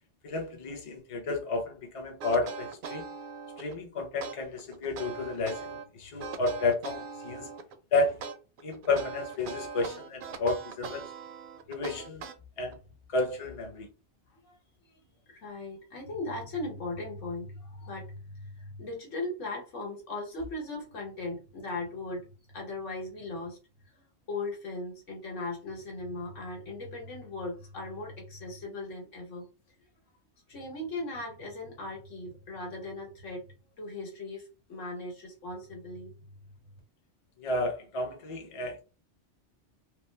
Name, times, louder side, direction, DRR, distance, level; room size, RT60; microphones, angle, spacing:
voice 1, 0.2-3.0 3.6-7.5 7.9-8.2 8.6-11.1 11.7-12.2 12.6-12.8 13.1-13.9 37.4-38.8, left 3 dB, 35° left, 0.6 m, -31 dB
sound 1, 2.2-3.8 4.2-5.8 6.2-7.8 8.2-12.7, right 5 dB, 60° right, 0.6 m, -40 dB
voice 2, 15.3-22.3 22.5-23.6 23.9-29.4 30.5-33.4 33.8-36.3, left 2 dB, 85° left, 1.6 m, -38 dB
3.0 x 2.0 x 3.2 m
omnidirectional pair, 1.2 m